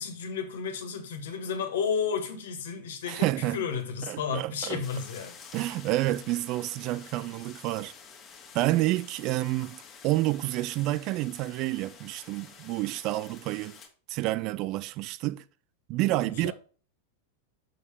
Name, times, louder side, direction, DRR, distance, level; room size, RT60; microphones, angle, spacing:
voice 1, 0.0-5.4 16.3-16.5, left 6 dB, 60° left, 1.8 m, -32 dB
voice 2, 3.1-3.6 4.1-4.8 5.5-7.9 8.5-13.8 14.1-15.4 15.9-16.5, right 16 dB, 40° right, 0.4 m, -29 dB
sound 1, 4.8-13.9, left 6 dB, 25° left, 1.9 m, -50 dB
6.7 x 6.3 x 3.5 m
figure-of-eight pair, 90°, 0 cm